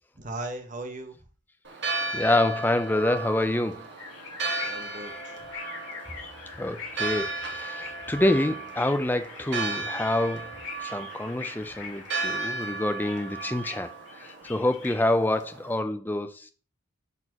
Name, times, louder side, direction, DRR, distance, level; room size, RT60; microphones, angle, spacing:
voice 1, 0.1-1.2 4.6-5.4, right 2 dB, 35° right, 1.2 m, -38 dB
Church bell, 1.6-15.7, right 3 dB, 55° right, 1.6 m, -35 dB
voice 2, 2.1-3.9 6.6-10.5 10.8-13.9 14.2-16.5, left 1 dB, 10° left, 0.5 m, -27 dB
sound 1, 4.0-15.1, left 5 dB, 70° left, 2.4 m, -43 dB
10.5 x 4.3 x 2.9 m
head